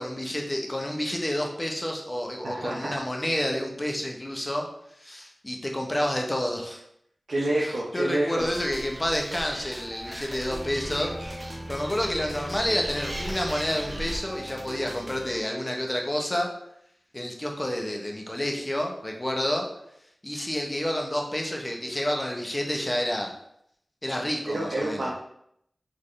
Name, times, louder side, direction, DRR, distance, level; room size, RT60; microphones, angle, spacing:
voice 1, 0.0-4.7 5.0-6.8 7.6-11.4 11.7-16.5 17.1-19.7 20.2-23.3 24.0-25.1, left 1 dB, 20° left, 1 dB, 0.8 m, -29 dB
voice 2, 2.4-3.0 7.3-8.5 24.5-25.1, right 1 dB, 80° right, -5 dB, 0.8 m, -28 dB
Animal, 8.4-14.2, right 1 dB, 50° right, 0.6 m, -39 dB
sound 1, 8.5-15.4, equal, 5° right, 0.5 m, -40 dB
4.1 x 3.6 x 3.2 m, 0.75 s
wide cardioid pair, 80°, 0 cm